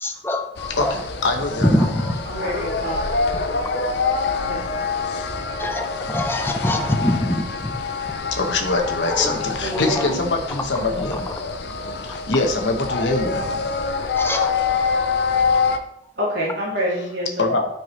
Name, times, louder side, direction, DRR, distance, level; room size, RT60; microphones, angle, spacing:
voice 1, 0.0-0.9 1.6-2.1 5.6-7.7 9.1-9.4 9.7-10.1 14.2-14.5, left 1 dB, 15° left, 5 dB, 0.7 m, -23 dB
sound 1, 0.6-15.8, left 4 dB, 65° left, 0.7 m, -26 dB
voice 2, 0.7-1.9 8.3-11.3 12.1-13.7 17.4-17.7, left 3 dB, 90° left, 3 dB, 1.1 m, -23 dB
voice 3, 2.2-3.0 4.4-4.8 9.6-10.2 16.2-17.5, equal, 75° right, -5 dB, 2.5 m, -27 dB
12.0 x 4.6 x 3.2 m, 0.78 s
head